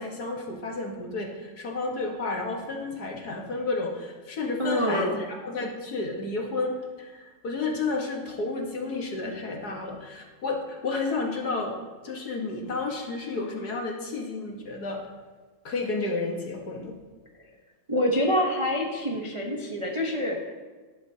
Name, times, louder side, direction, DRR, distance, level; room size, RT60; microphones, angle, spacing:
voice 1, 0.0-11.8 12.0-15.0 15.6-17.0, left 3 dB, 50° left, 0 dB, 1.7 m, -31 dB
voice 2, 4.6-5.2 17.9-20.5, equal, 30° right, -2 dB, 0.6 m, -26 dB
11.0 x 11.0 x 2.8 m, 1.4 s
omnidirectional pair, 2.3 m